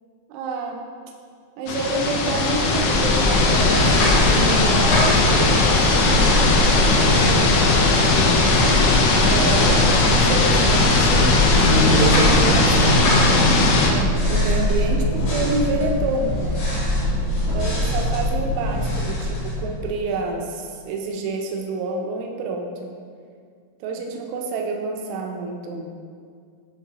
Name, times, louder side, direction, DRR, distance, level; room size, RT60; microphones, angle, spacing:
voice 1, 0.3-0.8 1.6-6.2 6.4-6.5 6.9-8.5 8.9-11.3 11.7-13.3 13.8-16.6 17.5-22.9 23.8-25.9, right 3 dB, 90° right, 1 dB, 2.4 m, -28 dB
sound 1, 1.7-13.9, left 3 dB, 80° left, 2.9 m, -18 dB
sound 2, 2.3-20.2, left 1 dB, 60° left, 2.1 m, -23 dB
sound 3, 11.6-19.1, right 1 dB, 70° right, 1.4 m, -27 dB
9.3 x 3.7 x 2.8 m, 2.2 s
omnidirectional pair, 5.5 m